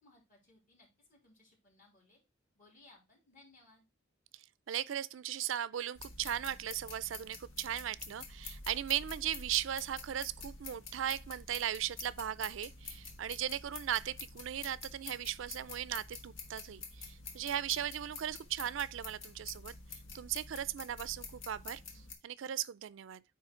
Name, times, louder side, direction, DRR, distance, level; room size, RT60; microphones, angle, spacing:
voice 1, 0.0-2.2 2.5-3.8, left 2 dB, 45° left, 3.2 m, -63 dB
voice 2, 4.7-19.7 20.1-21.8 22.2-23.2, right 10 dB, 75° right, 0.4 m, -37 dB
sound 1, 6.0-22.1, left 4 dB, 75° left, 1.3 m, -48 dB
9.1 x 3.2 x 4.4 m
head